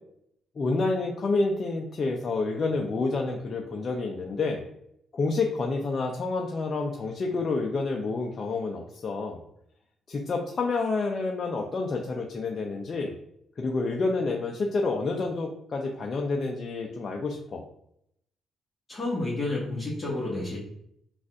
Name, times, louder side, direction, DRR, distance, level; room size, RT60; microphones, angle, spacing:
voice 1, 0.6-4.6 5.1-9.4 10.1-13.2 13.6-17.6, left 3 dB, 40° left, 1 dB, 0.6 m, -29 dB
voice 2, 18.9-20.6, left 2 dB, 25° left, -6 dB, 1.5 m, -30 dB
3.9 x 2.5 x 4.6 m, 0.73 s
cardioid pair, 90°, 0 cm